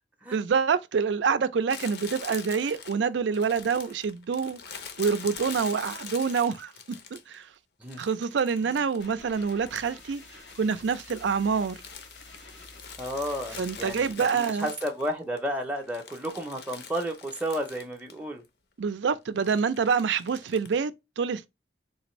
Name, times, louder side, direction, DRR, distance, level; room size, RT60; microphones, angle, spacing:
voice 1, 0.3-4.6 5.0-6.7 7.1-7.5 8.0-10.2 10.6-11.8 13.6-14.7 18.8-21.5, right 6 dB, 85° right, 0.4 m, -26 dB
Crumpling crinkling, 1.7-7.4 7.9-10.1 10.3-15.4 15.8-18.2 18.4-18.5 19.4-20.8, left 6 dB, 60° left, 0.6 m, -44 dB
sound 1, 9.0-14.1, left 3 dB, 85° left, 1.2 m, -49 dB
voice 2, 13.0-18.4, equal, 10° right, 0.5 m, -32 dB
3.8 x 2.5 x 2.9 m
head